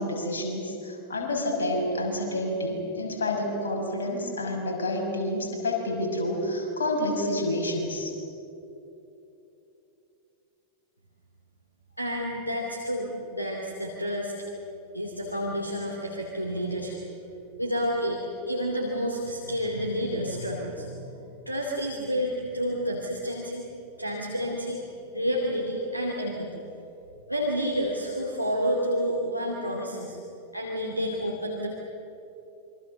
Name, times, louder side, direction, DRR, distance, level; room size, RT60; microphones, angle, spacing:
voice 1, 0.0-8.1, left 1 dB, 70° left, 0 dB, 6.2 m, -29 dB
voice 2, 12.0-14.3 14.9-17.0 17.6-18.2 18.5-21.1 21.5-23.6 24.0-24.8 25.1-26.5 27.3-30.2 30.5-31.7, equal, 90° left, -1 dB, 2.7 m, -29 dB
27.5 x 24.5 x 6.7 m, 2.9 s
figure-of-eight pair, 90°, 0 cm